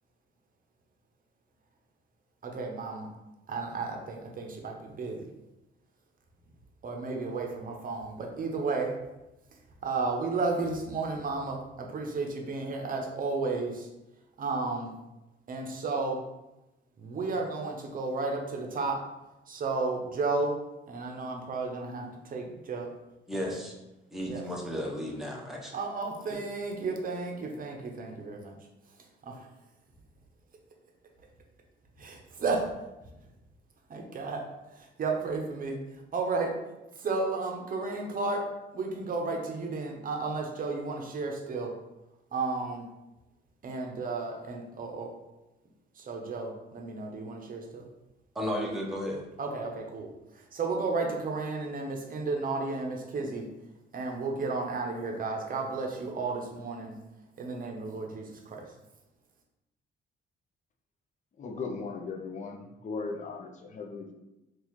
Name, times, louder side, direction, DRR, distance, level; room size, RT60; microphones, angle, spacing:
voice 1, 2.4-3.1 3.5-5.3 6.8-8.9 9.8-13.9 14.4-14.9 15.5-16.2 17.0-19.0 19.5-20.6 20.9-22.9 23.5-23.6 24.3-24.4 25.7-28.6 29.3-29.4 32.0-32.7 33.9-34.4 34.8-35.8 36.1-36.5 37.0-38.5 38.7-41.7 42.3-42.9 43.6-45.1 46.0-47.8 49.4-50.1 50.5-53.4 53.9-56.9 57.4-58.6, right 3 dB, 45° right, 2 dB, 0.7 m, -33 dB
voice 2, 23.3-23.7 24.1-25.8 26.3-26.4 48.3-49.2, equal, ahead, -2 dB, 0.8 m, -34 dB
voice 3, 61.4-64.1, left 4 dB, 40° left, 2 dB, 0.6 m, -37 dB
4.0 x 2.4 x 3.0 m, 0.97 s
cardioid pair, 90°, 20 cm